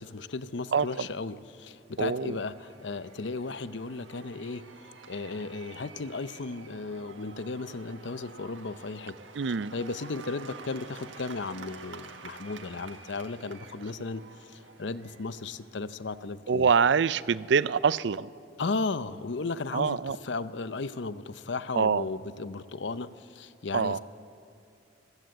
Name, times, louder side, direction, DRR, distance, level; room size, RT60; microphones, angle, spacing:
voice 1, 0.0-4.7 5.1-9.2 9.5-16.7 18.6-24.0, left 3 dB, 70° left, 14 dB, 0.7 m, -35 dB
Cheering / Applause / Crowd, 1.7-16.4, right 4 dB, 85° right, 1.5 m, -50 dB
voice 2, 2.0-2.4 9.4-9.7 16.5-18.3 19.7-20.2 21.8-22.0 23.7-24.0, right 6 dB, 65° right, 18 dB, 0.5 m, -25 dB
25.5 x 15.5 x 8.0 m, 2.6 s
head